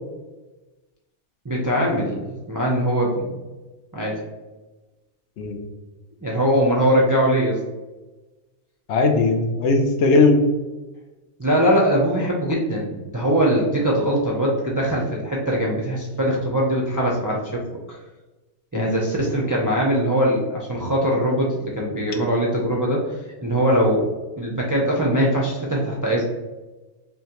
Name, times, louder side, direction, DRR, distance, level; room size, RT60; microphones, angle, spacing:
voice 1, 1.4-3.4 3.9-4.2 6.2-7.6 11.4-17.6 18.7-23.0 23.4-24.1 24.4-26.2, equal, 30° right, -3 dB, 0.3 m, -21 dB
voice 2, 8.9-10.4 18.7-19.0, left 3 dB, 75° left, 4 dB, 0.9 m, -18 dB
5.5 x 2.2 x 2.9 m, 1.2 s
omnidirectional pair, 1.2 m